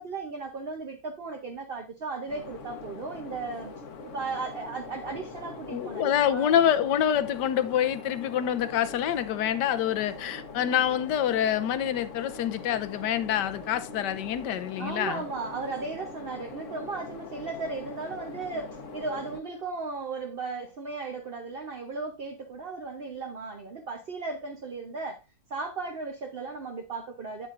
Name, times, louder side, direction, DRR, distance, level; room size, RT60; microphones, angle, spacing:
voice 1, 0.0-3.7 4.1-6.6 14.8-25.2 25.5-27.5, right 4 dB, 50° right, 0.7 m, -36 dB
sound 1, 2.3-19.4, left 4 dB, 50° left, 1.1 m, -43 dB
voice 2, 5.7-15.2, left 10 dB, 75° left, 1.3 m, -26 dB
8.2 x 8.1 x 2.5 m
omnidirectional pair, 2.0 m